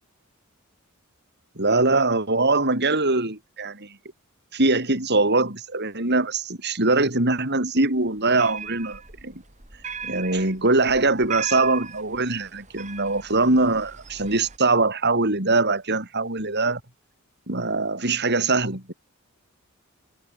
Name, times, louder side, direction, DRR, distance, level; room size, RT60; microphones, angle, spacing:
voice 1, 1.6-4.0 4.5-9.3 10.0-16.8 17.5-18.9, right 3 dB, 50° right, 5.7 m, -22 dB
sound 1, 8.0-14.6, right 6 dB, 35° right, 6.6 m, -38 dB
head